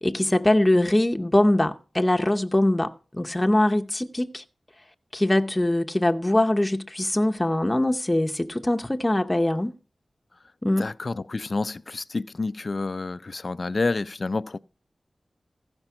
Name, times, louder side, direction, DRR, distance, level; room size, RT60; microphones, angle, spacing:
voice 1, 0.0-4.4 5.1-9.7 10.6-10.9, left 1 dB, 20° left, 0.7 m, -22 dB
voice 2, 10.8-14.6, left 3 dB, 55° left, 0.4 m, -29 dB
15.5 x 5.3 x 5.9 m
cardioid pair, 50°, 0 cm